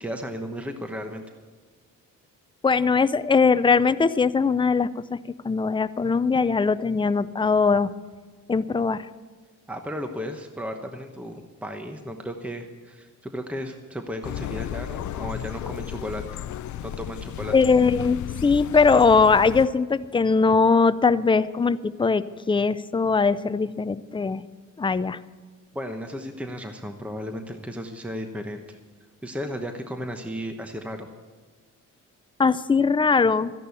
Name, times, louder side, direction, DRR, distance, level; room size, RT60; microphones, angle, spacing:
voice 1, 0.0-1.2 9.7-16.2 16.8-17.5 25.7-28.8 29.2-31.1, equal, 5° right, 5 dB, 1.0 m, -34 dB
voice 2, 2.6-5.2 5.4-7.9 8.5-9.1 17.5-24.4 24.8-25.2 32.4-33.5, left 4 dB, 15° left, 13 dB, 0.5 m, -21 dB
sound 1, 14.2-19.7, left 12 dB, 65° left, 0.5 m, -34 dB
13.5 x 11.0 x 7.0 m, 1.5 s
cardioid pair, 110°, 32 cm